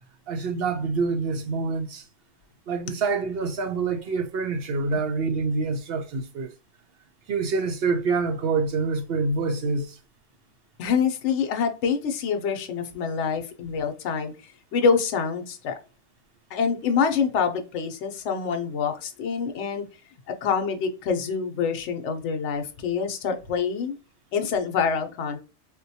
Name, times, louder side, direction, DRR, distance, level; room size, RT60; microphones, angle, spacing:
voice 1, 0.3-2.0 2.7-6.5 7.3-10.0, right 4 dB, 65° right, 0.7 m, -26 dB
voice 2, 10.8-14.3 14.7-15.7 16.5-19.9 20.3-24.0 24.3-25.4, left 6 dB, 70° left, 0.9 m, -26 dB
3.9 x 2.2 x 2.6 m
omnidirectional pair, 1.3 m